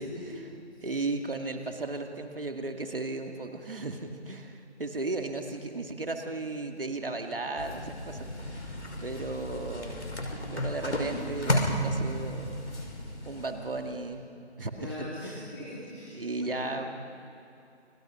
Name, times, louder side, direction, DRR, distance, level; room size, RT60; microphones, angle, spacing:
voice 1, 0.0-1.0 14.7-16.8, left 2 dB, 20° left, -6 dB, 3.4 m, -42 dB
voice 2, 0.8-8.7 9.0-10.0 10.5-12.6 13.3-14.2 14.6-15.4 16.1-16.8, right 2 dB, 55° right, 4 dB, 2.1 m, -35 dB
sound 1, 7.6-14.1, equal, 80° left, 5.6 m, -33 dB
29.5 x 21.5 x 5.8 m, 2.8 s
figure-of-eight pair, 170°, 34 cm